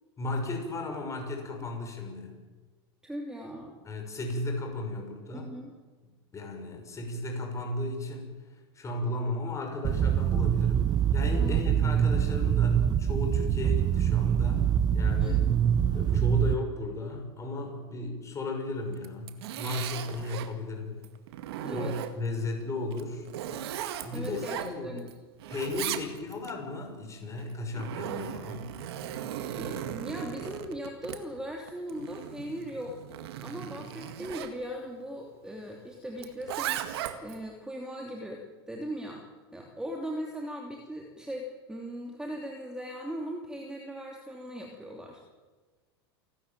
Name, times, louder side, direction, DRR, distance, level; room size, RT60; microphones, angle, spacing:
voice 1, 0.2-2.4 3.8-5.5 6.3-8.3 8.7-14.7 14.9-15.4 15.9-21.0 21.7-23.3 24.0-25.0 25.5-28.8, left 2 dB, 20° left, 3 dB, 6.1 m, -35 dB
voice 2, 3.0-3.8 5.3-5.7 11.4-11.6 15.2-15.6 21.6-22.0 24.1-24.6 24.8-25.1 25.7-26.0 29.6-32.9 33.4-39.2 39.5-45.2, equal, 5° right, 1 dB, 3.0 m, -39 dB
sound 1, 9.8-16.5, right 9 dB, 30° right, 1.2 m, -24 dB
Zipper (clothing), 18.9-20.5 21.0-22.4 22.9-25.1 25.4-26.5 27.4-34.5 36.2-37.4, right 11 dB, 75° right, 2.0 m, -37 dB
29.0 x 13.0 x 9.1 m, 1.3 s
hypercardioid pair, 110°, 13 cm